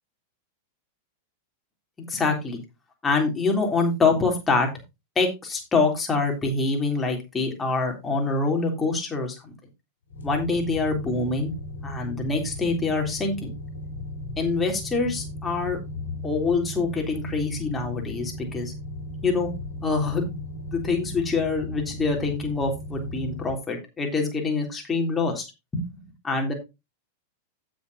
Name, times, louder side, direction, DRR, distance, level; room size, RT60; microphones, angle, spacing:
voice 1, 2.1-2.6 3.0-4.7 5.2-9.5 10.2-11.5 11.8-13.5 14.4-15.8 16.2-18.7 19.2-19.5 19.8-20.4 20.7-25.4 25.7-25.9 26.2-26.5, left 3 dB, 15° left, 2 dB, 3.5 m, -25 dB
sound 1, 10.1-23.5, left 1 dB, 65° left, 2.7 m, -36 dB
15.5 x 6.4 x 2.8 m, 0.24 s
figure-of-eight pair, 90°, 0 cm